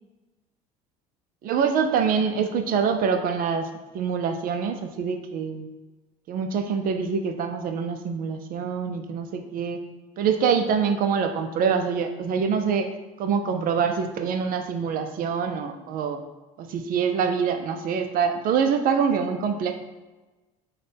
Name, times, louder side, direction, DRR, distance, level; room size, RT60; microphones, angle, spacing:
voice 1, 1.4-3.7 3.9-5.7 6.3-9.8 10.2-12.9 13.2-16.2 16.6-19.7, right 6 dB, 50° right, 6 dB, 0.4 m, -25 dB
6.1 x 2.2 x 3.4 m, 1.2 s
hypercardioid pair, 80°, 18 cm